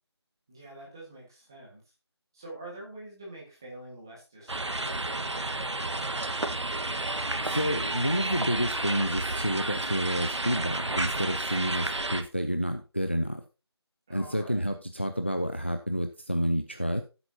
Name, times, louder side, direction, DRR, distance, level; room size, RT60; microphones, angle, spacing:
voice 1, 0.5-1.8 2.3-6.2 14.1-14.6, right 1 dB, 10° right, -4 dB, 1.6 m, -46 dB
sound 1, 4.5-12.2, right 2 dB, 85° right, 1.5 m, -31 dB
voice 2, 7.4-13.4 14.1-17.0, equal, 25° left, 8 dB, 0.5 m, -29 dB
15.0 x 8.0 x 2.8 m, 0.31 s
figure-of-eight pair, 180°, 14 cm